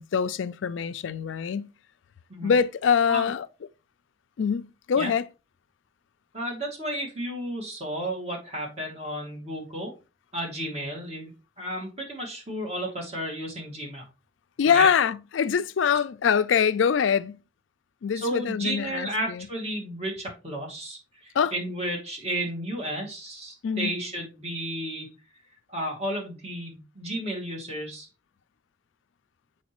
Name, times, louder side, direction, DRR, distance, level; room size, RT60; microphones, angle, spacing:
voice 1, 0.0-1.7 2.4-3.5 4.4-5.3 14.6-17.4 18.0-19.5 21.3-21.5 23.6-24.0, left 7 dB, 85° left, 0.4 m, -24 dB
voice 2, 6.3-9.9 10.3-11.3 11.6-14.0 14.7-14.9 18.1-25.1 25.7-28.1, right 1 dB, 35° right, 2.3 m, -33 dB
7.2 x 4.7 x 3.0 m
head